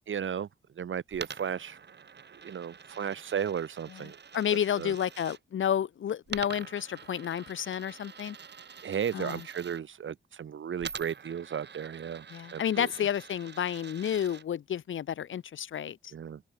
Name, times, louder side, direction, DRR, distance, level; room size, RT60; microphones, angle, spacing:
voice 1, 0.1-0.5 0.8-1.8 2.4-4.2 4.8-4.9 8.8-12.3 12.5-12.9 16.1-16.4, right 8 dB, 80° right, 2.1 m, -34 dB
Coin (dropping), 1.1-5.4 6.3-9.8 10.8-14.4, right 6 dB, 60° right, 1.6 m, -46 dB
voice 2, 3.9-8.4 9.1-9.5 12.3-16.1, left 9 dB, 80° left, 0.8 m, -31 dB
open air
cardioid pair, 80°, 20 cm